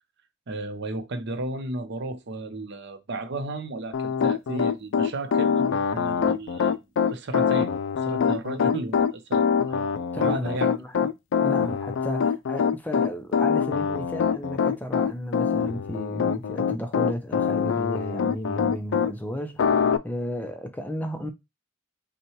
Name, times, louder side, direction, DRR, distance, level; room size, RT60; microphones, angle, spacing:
voice 1, 0.5-10.7, right 2 dB, 60° right, 0.7 m, -34 dB
Piano, 3.9-19.1 19.6-20.0, left 6 dB, 65° left, 0.4 m, -24 dB
voice 2, 10.1-11.1 11.4-19.8 20.0-21.3, equal, 10° left, 0.5 m, -33 dB
5.4 x 2.3 x 3.0 m
head